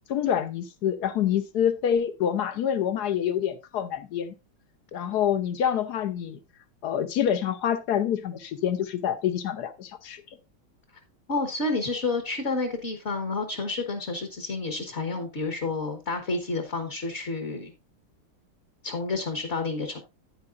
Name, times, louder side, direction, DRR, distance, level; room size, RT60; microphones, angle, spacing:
voice 1, 0.1-4.3 4.9-6.4 6.8-10.2, left 9 dB, 60° left, 1.2 m, -26 dB
voice 2, 11.3-17.7 18.8-20.0, left 3 dB, 35° left, 1.3 m, -30 dB
9.6 x 9.6 x 2.5 m
omnidirectional pair, 2.3 m